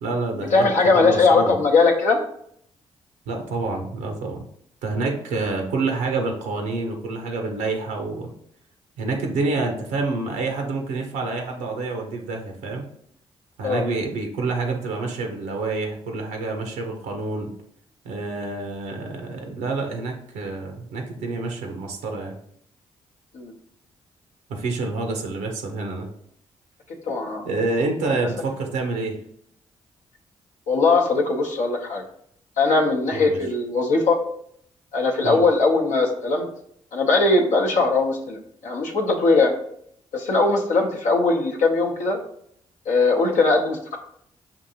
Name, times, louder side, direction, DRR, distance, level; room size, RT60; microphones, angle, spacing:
voice 1, 0.0-1.6 3.3-4.4 4.8-8.3 9.0-12.8 13.6-17.5 18.0-22.4 24.5-26.1 27.5-29.2 33.1-33.4 35.2-35.4, right 3 dB, 85° right, 3 dB, 0.6 m, -27 dB
voice 2, 0.5-2.2 13.6-13.8 23.3-23.5 27.1-27.4 30.7-32.0 32.6-34.2 34.9-36.5 36.9-39.5 40.1-42.2 42.9-44.0, left 3 dB, 70° left, 1 dB, 0.7 m, -20 dB
5.2 x 2.5 x 2.7 m, 0.67 s
hypercardioid pair, 40°, 14 cm